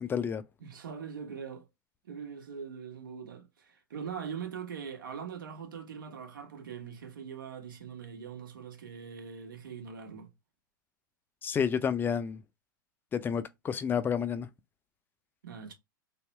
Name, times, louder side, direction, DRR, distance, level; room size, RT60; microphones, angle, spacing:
voice 1, 0.0-0.4 11.4-12.4 13.1-14.5, left 7 dB, 20° left, 0.5 m, -30 dB
voice 2, 0.6-1.7 2.0-10.3 15.4-15.7, right 7 dB, 75° right, 1.1 m, -42 dB
3.6 x 2.2 x 3.1 m
hypercardioid pair, 110°, 11 cm